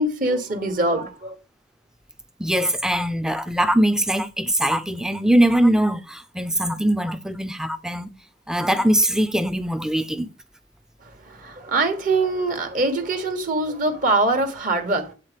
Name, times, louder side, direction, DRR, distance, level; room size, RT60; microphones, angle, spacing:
voice 1, 0.0-1.4 11.0-15.1, right 2 dB, 45° right, 1.3 m, -23 dB
voice 2, 2.4-8.1 8.5-10.3, right 1 dB, 5° right, 0.5 m, -21 dB
8.3 x 3.9 x 5.0 m
head